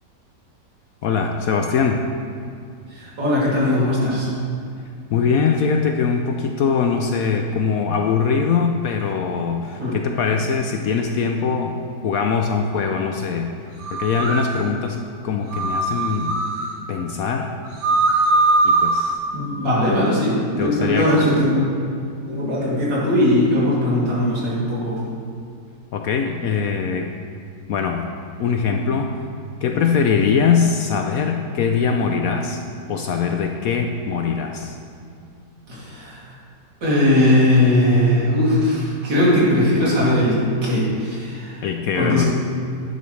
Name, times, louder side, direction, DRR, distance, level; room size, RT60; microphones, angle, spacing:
voice 1, 1.0-2.1 5.1-13.5 13.9-15.0 15.2-16.4 16.9-17.5 18.6-19.2 20.6-21.2 25.9-27.1 27.7-28.1 28.4-29.2 29.6-32.6 32.9-34.7 41.6-42.2, left 5 dB, 70° left, 4 dB, 0.9 m, -22 dB
voice 2, 2.9-4.3 9.8-10.0 19.3-21.7 22.3-25.0 35.7-36.2 36.8-40.4 40.6-41.6 41.9-42.3, left 1 dB, 80° right, -8 dB, 3.4 m, -19 dB
sound 1, 13.8-14.5 15.5-16.7 17.6-19.1, right 2 dB, 45° right, 1.1 m, -20 dB
10.5 x 9.5 x 3.2 m, 2.4 s
omnidirectional pair, 1.9 m